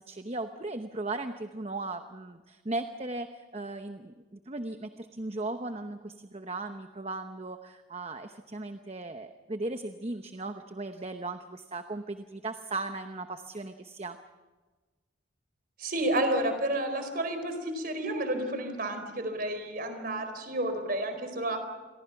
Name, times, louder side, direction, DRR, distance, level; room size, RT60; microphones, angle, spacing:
voice 1, 0.0-14.2, right 2 dB, 30° right, 7 dB, 0.9 m, -37 dB
voice 2, 15.8-21.6, right 1 dB, 45° right, 8 dB, 4.4 m, -31 dB
29.0 x 23.0 x 6.0 m, 1.3 s
head